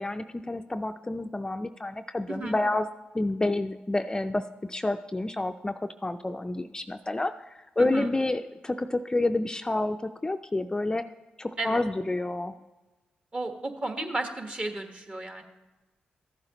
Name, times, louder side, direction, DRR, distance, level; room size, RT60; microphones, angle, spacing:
voice 1, 0.0-2.9 3.1-7.3 7.8-11.1 11.4-12.5, left 2 dB, 20° left, 8 dB, 0.4 m, -29 dB
voice 2, 7.8-8.1 11.6-11.8 13.3-15.4, right 2 dB, 35° right, 5 dB, 1.3 m, -33 dB
14.0 x 7.6 x 3.0 m, 1.2 s
supercardioid pair, 50°, 4 cm